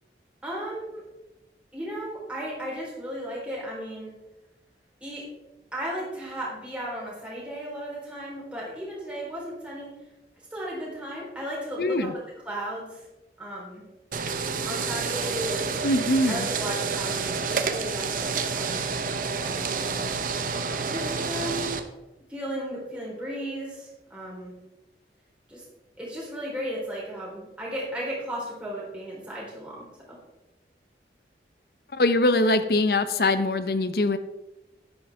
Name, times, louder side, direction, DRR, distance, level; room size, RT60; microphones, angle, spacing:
voice 1, 0.4-1.0 1.7-4.1 5.0-5.2 5.7-9.9 10.5-12.1 12.4-13.0 13.4-13.8 14.6-15.8 16.3-18.9 19.2-20.1 20.9-21.7 22.3-24.5 25.5-25.6 26.0-29.8, equal, 5° right, -6 dB, 3.8 m, -35 dB
voice 2, 11.8-12.1 15.8-16.5 31.9-34.2, left 2 dB, 55° left, 12 dB, 0.6 m, -22 dB
sound 1, 14.1-21.8, right 5 dB, 50° right, 0.7 m, -29 dB
10.5 x 10.0 x 3.5 m, 0.99 s
head